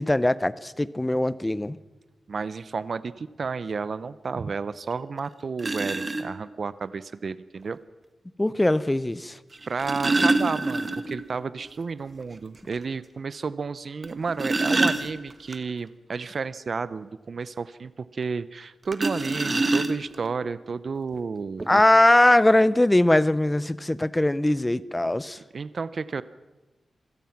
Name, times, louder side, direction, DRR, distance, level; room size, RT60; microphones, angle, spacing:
voice 1, 0.0-1.8 8.4-9.4 21.7-25.4, left 1 dB, 10° left, 0.6 m, -21 dB
voice 2, 2.3-7.8 9.7-21.8 25.5-26.2, right 5 dB, 50° right, 0.6 m, -32 dB
sound 1, 4.9-5.0 5.6-6.2 7.6-7.7 9.5-11.3 11.6-11.7 12.1-12.2 12.7-12.8 14.0-15.6 18.9-20.3 21.1-21.2 21.6-21.8, right 2 dB, 25° right, 1.5 m, -25 dB
27.0 x 17.0 x 5.9 m
wide cardioid pair, 135°, 0 cm